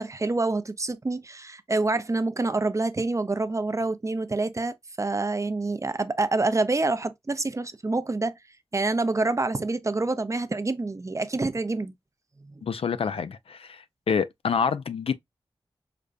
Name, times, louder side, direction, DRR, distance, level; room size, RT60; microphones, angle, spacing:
voice 1, 0.0-8.3 8.7-11.9, right 3 dB, 30° right, 0.5 m, -27 dB
voice 2, 12.6-15.1, left 6 dB, 75° left, 0.4 m, -27 dB
5.0 x 2.2 x 2.4 m
cardioid pair, 50°, 10 cm